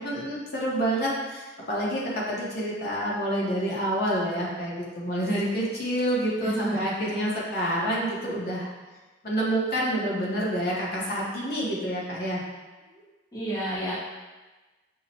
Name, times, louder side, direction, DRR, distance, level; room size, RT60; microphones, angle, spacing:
voice 1, 0.0-8.7 9.2-12.4, right 1 dB, 50° left, -5 dB, 0.8 m, -28 dB
voice 2, 6.4-6.9 12.9-13.0 13.3-13.9, right 1 dB, 20° left, -9 dB, 0.6 m, -30 dB
5.5 x 2.1 x 2.7 m, 1.2 s
head